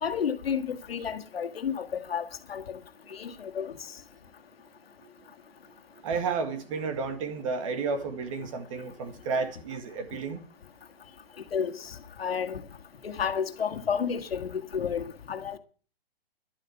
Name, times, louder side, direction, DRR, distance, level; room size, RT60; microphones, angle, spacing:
voice 1, 0.0-2.8 3.1-3.7 11.5-12.6 13.0-15.6, left 7 dB, 80° left, 1.9 m, -31 dB
voice 2, 6.0-10.4, right 5 dB, 35° right, 1.9 m, -32 dB
11.5 x 7.8 x 9.2 m
hypercardioid pair, 165°, 30 cm